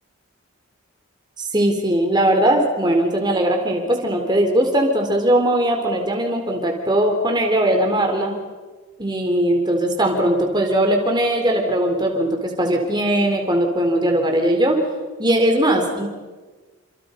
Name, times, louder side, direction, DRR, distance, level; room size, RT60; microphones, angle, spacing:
voice 1, 1.4-8.3 9.0-14.8 15.2-16.1, right 1 dB, 20° right, 2 dB, 4.1 m, -19 dB
28.5 x 27.0 x 5.4 m, 1.3 s
head